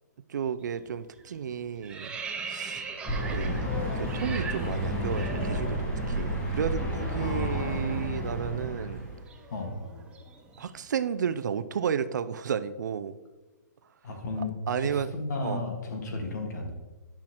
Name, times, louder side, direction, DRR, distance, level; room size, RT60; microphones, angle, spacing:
voice 1, 0.3-2.2 2.5-2.8 3.3-3.7 4.0-9.1 10.6-13.1 14.4-15.1 15.4-15.6, right 7 dB, 75° right, 13 dB, 0.5 m, -32 dB
sound 1, 0.6-0.9 1.2-6.1 6.4-6.6 6.9-11.0, right 5 dB, 10° right, 0.6 m, -40 dB
sound 2, 3.1-9.2, equal, 15° left, 1.5 m, -31 dB
voice 2, 7.2-8.3 9.5-9.8 14.0-16.7, left 2 dB, 70° left, 3 dB, 1.7 m, -34 dB
10.5 x 5.7 x 3.0 m, 1.2 s
hypercardioid pair, 150°, 10 cm